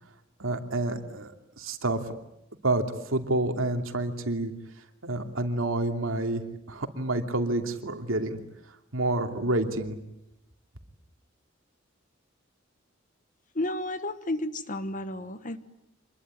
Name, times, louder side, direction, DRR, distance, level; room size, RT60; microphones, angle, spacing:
voice 1, 0.4-2.0 2.6-4.5 5.0-6.4 6.7-8.4 8.9-10.0, right 2 dB, 85° right, 5 dB, 2.8 m, -28 dB
voice 2, 13.5-15.6, left 1 dB, 40° left, 12 dB, 1.4 m, -32 dB
26.5 x 21.5 x 9.7 m, 0.83 s
head